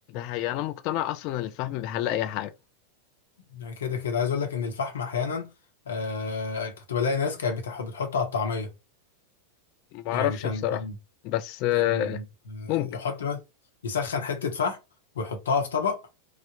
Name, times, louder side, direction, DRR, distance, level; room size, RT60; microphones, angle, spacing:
voice 1, 0.1-2.5 9.9-10.8 11.2-12.2 12.7-12.9, left 13 dB, 40° left, 0.4 m, -28 dB
voice 2, 3.5-5.5 5.9-8.7 10.1-11.0 11.7-13.4 13.8-14.8 15.1-16.0, left 5 dB, 65° left, 0.8 m, -29 dB
3.3 x 2.1 x 2.8 m
figure-of-eight pair, 90°, 0 cm